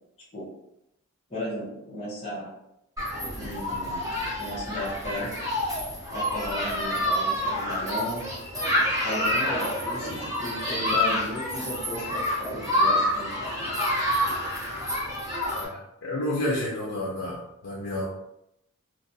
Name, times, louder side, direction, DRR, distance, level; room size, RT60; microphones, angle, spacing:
voice 1, 1.3-2.5 3.3-5.4 6.1-8.3 9.0-13.7, equal, 25° left, -10 dB, 0.8 m, -35 dB
Human group actions, 3.0-15.7, left 1 dB, 15° right, 0.8 m, -28 dB
voice 2, 15.5-17.4 17.6-18.1, left 1 dB, 70° left, -4 dB, 0.6 m, -30 dB
2.5 x 2.2 x 2.6 m, 0.84 s
head